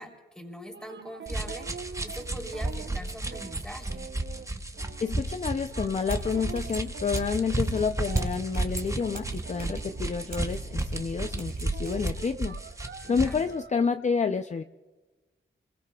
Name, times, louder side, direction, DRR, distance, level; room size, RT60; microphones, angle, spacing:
voice 1, 0.0-4.1 13.0-13.4, equal, 5° left, 1 dB, 3.2 m, -42 dB
sound 1, 0.7-10.9 11.2-13.9, right 7 dB, 75° right, 0.6 m, -46 dB
sound 2, 1.3-13.5, right 2 dB, 15° right, 0.8 m, -33 dB
voice 2, 5.0-12.6 13.1-14.6, left 5 dB, 40° left, 8 dB, 0.5 m, -29 dB
sound 3, 6.1-12.2, right 3 dB, 55° right, 2.4 m, -38 dB
30.0 x 21.0 x 2.3 m, 1.2 s
wide cardioid pair, 85°, 19 cm